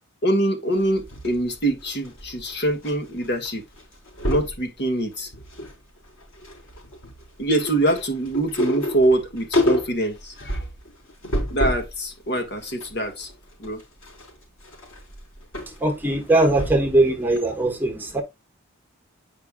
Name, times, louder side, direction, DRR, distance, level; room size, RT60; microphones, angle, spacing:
voice 1, 0.2-3.6 4.3-5.3 7.4-10.6 11.5-13.3 13.6-13.8, right 1 dB, 55° left, 1.7 m, -24 dB
sound 1, 0.8-2.9 3.2-3.5 3.8-4.6 5.1-5.8 6.1-11.9 12.4-17.0 17.4-17.5, left 1 dB, 90° left, 3.9 m, -29 dB
voice 2, 15.8-18.2, right 2 dB, 10° right, 1.1 m, -20 dB
9.0 x 5.3 x 2.3 m
head